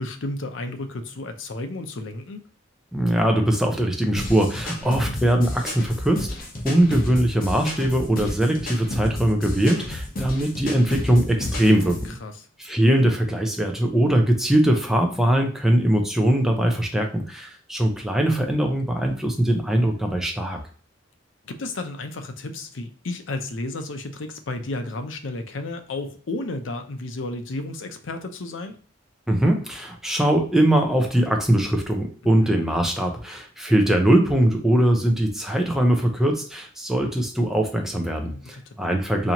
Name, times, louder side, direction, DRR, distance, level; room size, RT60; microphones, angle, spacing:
voice 1, 0.0-2.4 4.8-5.1 12.0-12.5 21.4-28.8 32.2-32.5 38.3-38.8, left 2 dB, 80° left, 7 dB, 0.6 m, -33 dB
voice 2, 2.9-6.3 6.6-12.0 12.6-20.6 29.3-39.3, right 1 dB, ahead, 2 dB, 0.6 m, -21 dB
sound 1, 4.2-12.1, left 1 dB, 45° left, 0.9 m, -31 dB
4.1 x 2.8 x 2.9 m, 0.43 s
head